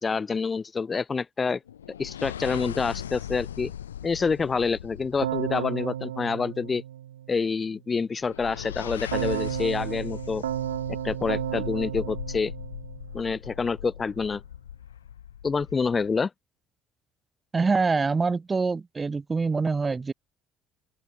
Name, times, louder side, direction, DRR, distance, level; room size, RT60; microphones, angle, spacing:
voice 1, 0.0-1.6 2.0-3.7 4.0-6.8 7.3-10.4 11.0-12.5 13.1-14.4 15.4-16.3, left 5 dB, 30° left, 2.3 m, -27 dB
sound 1, 1.7-6.1 8.2-16.1, left 10 dB, 85° left, 2.0 m, -39 dB
Keyboard (musical), 5.2-7.5 9.1-13.4, right 11 dB, 80° right, 1.9 m, -33 dB
voice 2, 17.5-20.1, right 4 dB, 25° right, 3.6 m, -25 dB
open air
hypercardioid pair, 55°, 0 cm